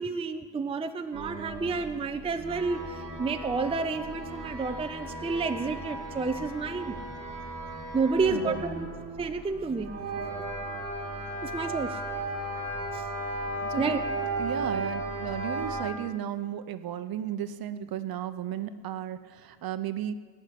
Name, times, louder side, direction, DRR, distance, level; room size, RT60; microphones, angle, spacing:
voice 1, 0.0-7.0 7.9-8.9 9.2-10.0 11.4-12.0 12.9-13.1 13.8-14.0, right 4 dB, 15° right, 7 dB, 0.5 m, -30 dB
sound 1, 1.1-15.8, right 2 dB, 35° right, 3.7 m, -35 dB
voice 2, 8.1-8.9 13.7-14.0 14.4-20.2, right 10 dB, 50° right, 11 dB, 0.8 m, -34 dB
19.0 x 6.5 x 10.0 m, 1.5 s
cardioid pair, 140°, 45 cm